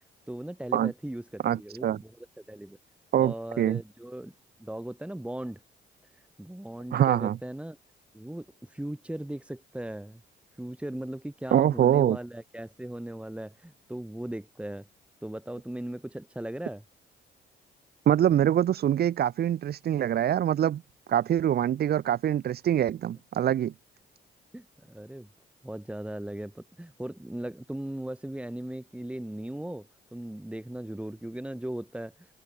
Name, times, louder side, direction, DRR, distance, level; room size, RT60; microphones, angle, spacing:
voice 1, 0.3-2.8 3.1-4.3 4.6-5.6 6.4-7.8 8.1-10.2 10.6-14.9 15.2-16.8 24.5-25.3 25.6-32.3, right 1 dB, 5° right, 2.9 m, -38 dB
voice 2, 1.4-2.0 3.1-3.8 6.9-7.4 11.5-12.2 18.1-20.8 21.1-23.7, right 10 dB, 50° right, 0.6 m, -24 dB
open air
cardioid pair, 90°, 20 cm